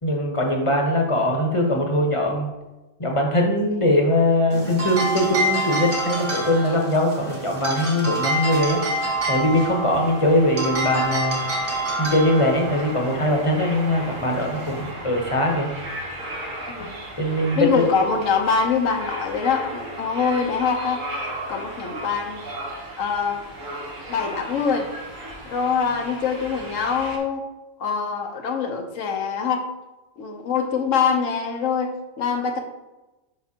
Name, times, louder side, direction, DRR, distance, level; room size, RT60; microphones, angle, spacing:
voice 1, 0.0-2.5 3.0-8.8 9.3-11.4 12.0-15.7 17.2-17.8, left 1 dB, 25° left, 1 dB, 1.0 m, -21 dB
voice 2, 4.5-4.8 16.7-16.9 17.5-21.1 21.5-22.5 23.0-23.5 24.1-24.9 25.5-27.5 27.8-29.7 30.2-32.6, left 6 dB, 70° left, 3 dB, 1.2 m, -24 dB
sound 1, 4.5-14.9, right 1 dB, 40° right, 1.4 m, -28 dB
sound 2, 8.7-27.2, right 1 dB, 70° right, 1.6 m, -36 dB
6.6 x 5.7 x 2.8 m, 1.0 s
omnidirectional pair, 1.4 m